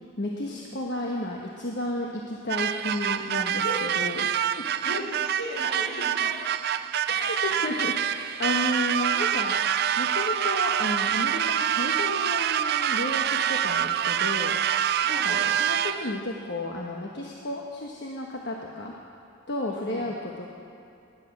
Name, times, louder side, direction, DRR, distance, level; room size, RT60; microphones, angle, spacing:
voice 1, 0.2-4.3 4.6-4.7 7.1-9.6 10.0-14.5 15.1-18.9 19.5-20.5, left 1 dB, 55° left, -1 dB, 1.2 m, -32 dB
sound 1, 2.5-16.2, right 9 dB, 50° right, 0.4 m, -26 dB
voice 2, 4.8-6.4 13.6-13.7 15.0-15.5 19.7-20.0, equal, 75° left, -5 dB, 4.4 m, -36 dB
19.0 x 10.5 x 6.0 m, 2.5 s
head